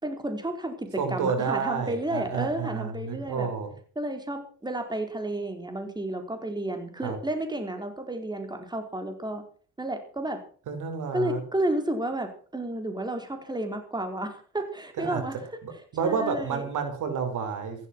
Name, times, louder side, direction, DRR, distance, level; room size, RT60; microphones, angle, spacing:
voice 1, 0.0-3.5 4.0-9.4 9.8-10.4 11.1-15.4 16.0-16.6, right 1 dB, 15° right, 6 dB, 4.6 m, -31 dB
voice 2, 1.0-3.7 7.0-7.2 10.7-11.4 15.0-15.2 15.6-17.9, right 6 dB, 80° right, 7 dB, 4.6 m, -30 dB
15.0 x 12.5 x 6.2 m, 0.42 s
cardioid pair, 90°, 30 cm